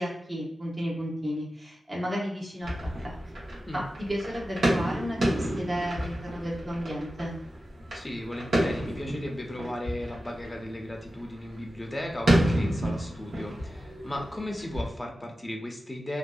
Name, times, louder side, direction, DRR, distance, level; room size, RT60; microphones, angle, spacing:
voice 1, 0.0-2.7 3.0-3.3 3.7-7.3, equal, 30° right, -4 dB, 0.8 m, -33 dB
sound 1, 2.6-14.9, right 1 dB, 75° right, 0.9 m, -30 dB
voice 2, 7.9-16.2, left 1 dB, 25° left, 1 dB, 0.6 m, -36 dB
2.6 x 2.1 x 2.3 m, 0.76 s
cardioid pair, 55°, 0 cm